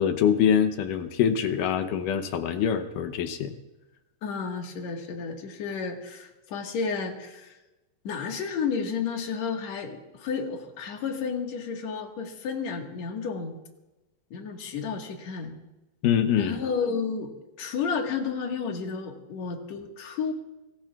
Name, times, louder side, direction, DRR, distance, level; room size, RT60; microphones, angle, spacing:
voice 1, 0.0-3.6 16.0-16.6, left 8 dB, 75° left, 8 dB, 2.1 m, -24 dB
voice 2, 4.2-7.6 8.0-13.6 14.3-15.6 16.4-20.3, left 5 dB, 55° left, 2 dB, 2.4 m, -32 dB
25.0 x 19.5 x 2.4 m, 1.0 s
omnidirectional pair, 4.5 m